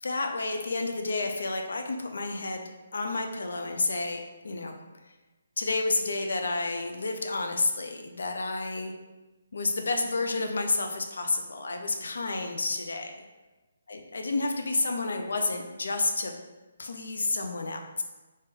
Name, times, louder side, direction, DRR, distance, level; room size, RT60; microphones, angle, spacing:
voice 1, 0.0-2.6 2.9-4.8 5.6-8.9 9.5-13.2 13.9-16.4 16.8-18.0, left 3 dB, 65° left, 4 dB, 0.5 m, -30 dB
5.1 x 2.1 x 3.6 m, 1.1 s
figure-of-eight pair, 140°, 0 cm